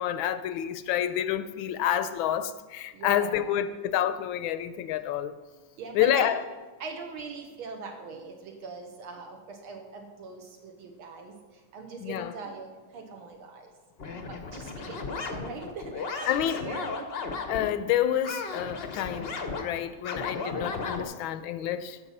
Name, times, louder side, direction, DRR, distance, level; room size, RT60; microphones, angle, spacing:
voice 1, 0.0-5.3 5.9-6.4 12.0-12.3 14.1-14.2 16.3-16.6 17.5-22.1, left 10 dB, 75° left, 12 dB, 1.3 m, -28 dB
voice 2, 2.9-3.5 5.8-6.3 6.8-11.3 11.7-13.7 14.3-17.1, right 4 dB, 75° right, 2 dB, 1.8 m, -41 dB
sound 1, 14.0-17.7 18.2-21.0, left 4 dB, 55° left, 0.7 m, -35 dB
14.5 x 5.9 x 5.4 m, 1.3 s
omnidirectional pair, 2.4 m